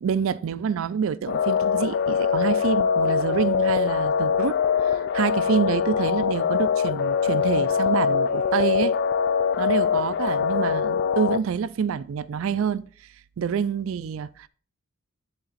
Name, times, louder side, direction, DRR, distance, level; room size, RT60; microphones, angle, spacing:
voice 1, 0.0-8.9 9.6-12.8 13.4-14.5, right 7 dB, 70° right, 0.4 m, -27 dB
sound 1, 1.3-11.4, left 6 dB, 55° left, 0.3 m, -23 dB
10.5 x 4.0 x 4.1 m
head